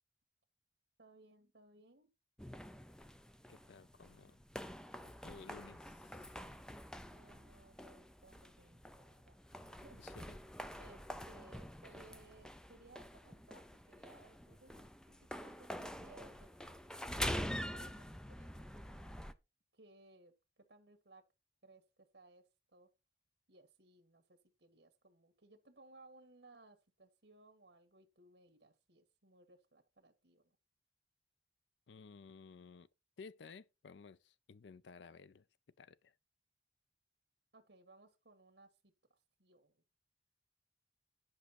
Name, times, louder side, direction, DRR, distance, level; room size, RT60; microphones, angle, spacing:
voice 1, 1.0-2.1 7.0-9.4 9.7-10.0 10.8-16.7 17.2-19.0 19.7-21.2 21.6-22.9 23.5-30.6 37.5-39.8, right 2 dB, 65° right, 1.6 m, -63 dB
sound 1, 2.4-19.3, equal, 5° left, 0.6 m, -46 dB
voice 2, 3.5-4.4 5.0-6.3 10.0-10.4 31.9-32.9 33.2-35.5 35.8-36.1, left 5 dB, 80° left, 0.5 m, -56 dB
10.5 x 5.7 x 4.2 m
head